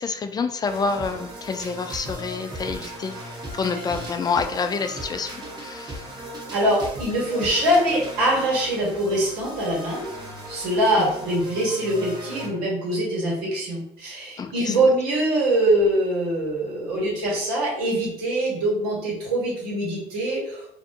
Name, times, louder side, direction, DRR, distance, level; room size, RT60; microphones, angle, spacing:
voice 1, 0.0-3.2 3.5-6.1 11.0-11.1 14.4-14.8, left 5 dB, 25° left, 8 dB, 0.3 m, -28 dB
sound 1, 0.6-12.6, right 1 dB, 25° right, 1.2 m, -37 dB
voice 2, 6.5-10.0 10.5-20.7, right 1 dB, 75° right, -4 dB, 1.2 m, -23 dB
2.6 x 2.2 x 2.6 m, 0.72 s
hypercardioid pair, 65°, 16 cm